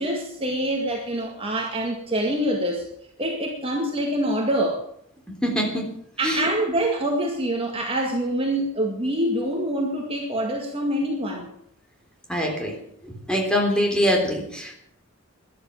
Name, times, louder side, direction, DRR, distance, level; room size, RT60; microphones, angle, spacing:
voice 1, 0.0-2.9 3.2-4.8 6.2-11.5, right 1 dB, 25° right, 1 dB, 2.0 m, -25 dB
voice 2, 5.3-5.9 6.2-6.5 12.3-12.8 13.0-14.7, equal, 5° left, 1 dB, 3.4 m, -24 dB
13.5 x 11.5 x 7.1 m, 0.72 s
head